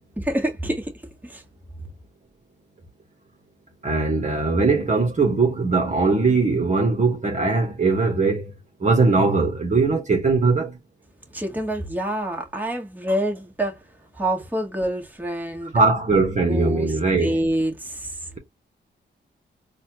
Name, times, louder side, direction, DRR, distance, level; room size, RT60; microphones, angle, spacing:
voice 1, 0.2-1.4 11.3-13.8 14.1-15.7 16.5-18.4, right 1 dB, 10° right, 1.7 m, -27 dB
voice 2, 3.8-8.5 8.8-10.8 15.7-17.5, right 3 dB, 35° right, 1.3 m, -20 dB
4.0 x 2.5 x 2.9 m
cardioid pair, 65°, 20 cm